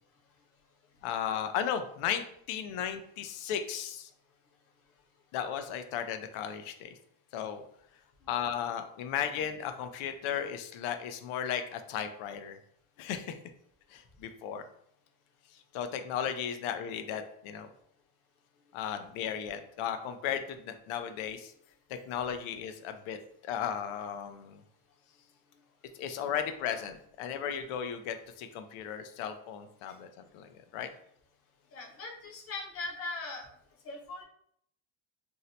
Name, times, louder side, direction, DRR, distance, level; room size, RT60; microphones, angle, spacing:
voice 1, 1.0-4.1 5.3-6.9 7.3-7.6 8.3-12.6 13.0-13.3 13.9-14.6 15.7-17.7 18.7-21.5 21.9-23.2 23.4-24.6 26.0-30.1 30.3-30.9, left 8 dB, 90° left, 8 dB, 0.5 m, -35 dB
voice 2, 31.7-33.5 33.8-34.2, left 3 dB, 30° left, -1 dB, 0.6 m, -40 dB
2.7 x 2.1 x 4.0 m, 0.70 s
cardioid pair, 165°, 49 cm